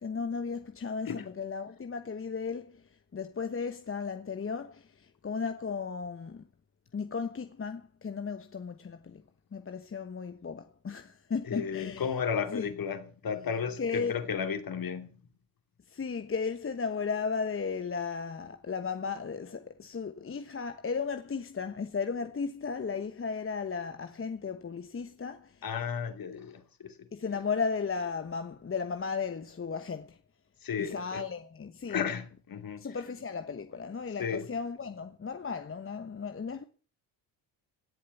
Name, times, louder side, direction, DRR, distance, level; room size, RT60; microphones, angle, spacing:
voice 1, 0.0-6.4 6.9-9.2 9.5-12.1 12.5-12.7 13.8-14.2 15.9-25.6 27.1-30.2 30.8-32.0 32.8-36.7, left 5 dB, 30° left, 1.1 m, -35 dB
voice 2, 11.4-15.1 25.6-27.0 30.6-31.2 31.9-32.9 34.2-34.5, left 7 dB, 50° left, 2.9 m, -33 dB
17.5 x 7.4 x 8.5 m
supercardioid pair, 75°, 45 cm